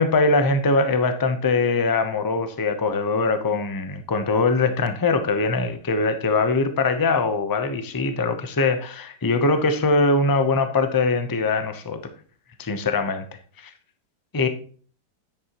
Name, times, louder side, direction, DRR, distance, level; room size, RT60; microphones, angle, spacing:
voice 1, 0.0-12.0 12.6-13.2 13.6-13.7 14.3-14.5, left 3 dB, 35° left, 9 dB, 0.3 m, -22 dB
9.8 x 8.5 x 3.0 m, 0.43 s
omnidirectional pair, 1.9 m